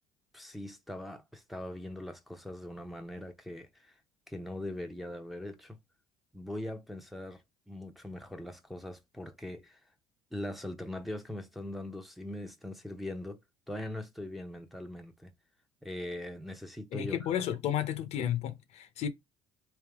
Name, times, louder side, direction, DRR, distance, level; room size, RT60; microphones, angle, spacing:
voice 1, 0.3-4.0 4.3-5.8 6.3-7.4 7.7-9.8 10.3-13.4 13.7-15.3 15.8-17.3, left 1 dB, ahead, 0.7 m, -41 dB
voice 2, 16.9-19.1, left 10 dB, 60° left, 0.6 m, -32 dB
3.5 x 2.8 x 3.4 m
supercardioid pair, 90°, 12 cm